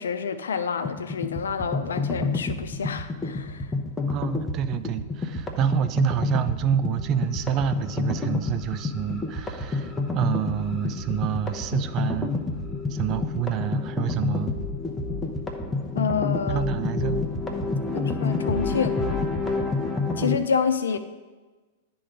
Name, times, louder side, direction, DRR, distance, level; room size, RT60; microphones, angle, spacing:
voice 1, 0.0-3.7 15.9-16.7 17.9-19.0 20.2-21.0, left 6 dB, 80° left, 9 dB, 0.6 m, -28 dB
sound 1, 0.8-20.4, left 3 dB, 15° left, 0.9 m, -29 dB
voice 2, 4.1-12.4 12.9-14.6 16.5-17.2 17.6-17.7, right 9 dB, 40° right, 12 dB, 0.5 m, -28 dB
9.9 x 3.9 x 5.1 m, 1.3 s
hypercardioid pair, 105°, 0 cm